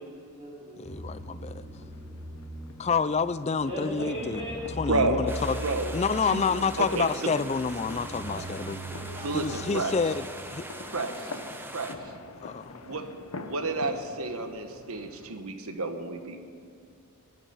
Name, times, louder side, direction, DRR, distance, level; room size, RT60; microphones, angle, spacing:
voice 1, 0.0-0.8 3.6-4.6 5.1-5.7 8.2-11.4, equal, 25° right, -7 dB, 4.7 m, -40 dB
voice 2, 0.8-1.8 2.8-4.4 4.8-5.6 5.9-8.8 9.3-10.6 12.4-12.8, left 5 dB, 30° left, 16 dB, 0.3 m, -28 dB
sound 1, 0.8-10.0, equal, 10° left, 3.7 m, -40 dB
sound 2, 1.8-15.3, left 3 dB, 75° left, 0.9 m, -47 dB
voice 3, 4.9-5.3 5.6-5.9 6.3-7.3 9.2-10.0 10.9-11.3 11.7-12.1 12.8-16.4, right 3 dB, 75° right, 7 dB, 1.2 m, -31 dB
sound 3, 5.3-11.9, right 1 dB, 10° right, 0.8 m, -42 dB
22.5 x 10.0 x 5.6 m, 2.2 s
head